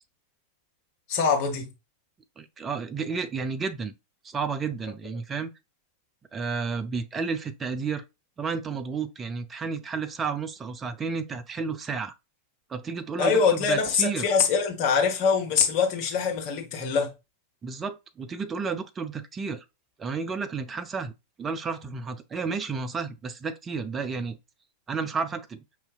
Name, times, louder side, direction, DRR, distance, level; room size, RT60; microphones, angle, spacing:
voice 1, 1.1-1.7 13.2-17.1, left 5 dB, 45° left, 1.1 m, -23 dB
voice 2, 2.4-3.9 4.2-5.5 6.3-8.0 8.4-12.1 12.7-14.3 17.6-19.6 20.0-21.1 21.4-24.4 24.9-25.6, right 5 dB, 20° right, 0.5 m, -32 dB
5.6 x 2.7 x 2.3 m
figure-of-eight pair, 90°, 0 cm